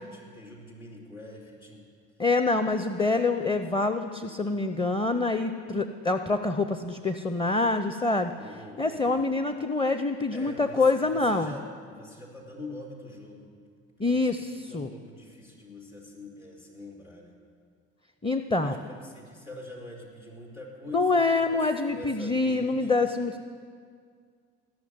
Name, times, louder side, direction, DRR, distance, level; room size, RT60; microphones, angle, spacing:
voice 1, 0.0-1.8 8.4-9.3 10.3-13.5 14.0-14.3 14.7-17.3 18.6-21.6 21.9-22.9, left 1 dB, 85° left, -4 dB, 3.1 m, -44 dB
voice 2, 2.2-8.3 8.8-11.5 14.0-14.9 18.2-18.7 20.9-23.4, left 3 dB, 15° left, 9 dB, 0.6 m, -26 dB
18.0 x 6.2 x 9.5 m, 2.1 s
hypercardioid pair, 60°, 33 cm